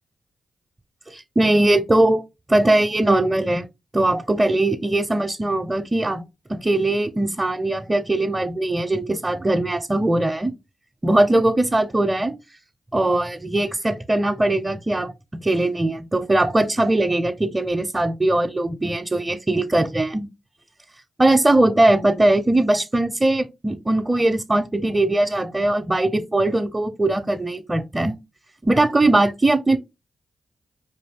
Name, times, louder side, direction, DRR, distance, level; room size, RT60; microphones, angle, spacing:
voice 1, 1.1-2.2 2.5-3.7 3.9-6.2 6.5-10.5 11.0-12.4 12.9-15.1 15.4-20.3 21.2-28.2 28.6-29.8, right 2 dB, 20° right, 0.6 m, -20 dB
4.6 x 2.7 x 3.5 m
supercardioid pair, 50°, 0 cm